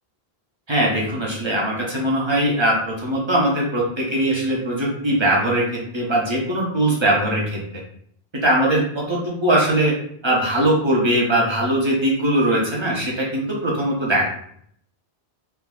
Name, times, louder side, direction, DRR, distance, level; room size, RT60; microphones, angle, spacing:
voice 1, 0.7-5.6 5.9-7.6 8.4-9.9 10.2-14.3, right 1 dB, 35° right, -3 dB, 0.6 m, -20 dB
3.3 x 2.6 x 2.3 m, 0.66 s
omnidirectional pair, 1.1 m